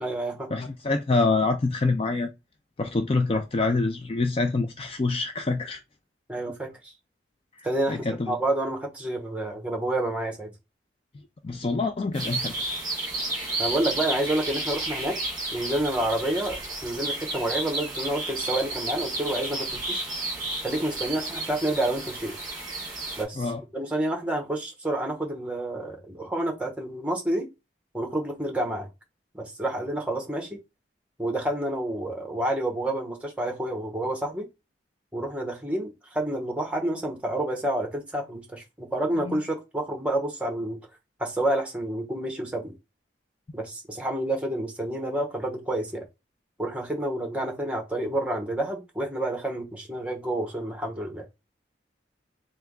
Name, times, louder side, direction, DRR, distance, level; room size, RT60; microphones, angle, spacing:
voice 1, 0.0-0.5 6.3-6.9 7.6-10.5 13.6-15.2 15.5-20.1 20.6-22.3 23.2-27.5 27.9-28.9 29.3-30.6 31.2-34.4 35.1-40.8 41.2-42.7 43.5-46.0 46.6-51.2, right 1 dB, 5° right, 1.0 m, -29 dB
voice 2, 0.5-2.3 2.8-5.8 7.9-8.3 11.4-12.5 23.4-23.6 39.2-39.4, left 3 dB, 30° left, 0.3 m, -26 dB
sound 1, 12.1-23.2, right 2 dB, 20° right, 1.5 m, -32 dB
3.4 x 3.0 x 3.6 m
head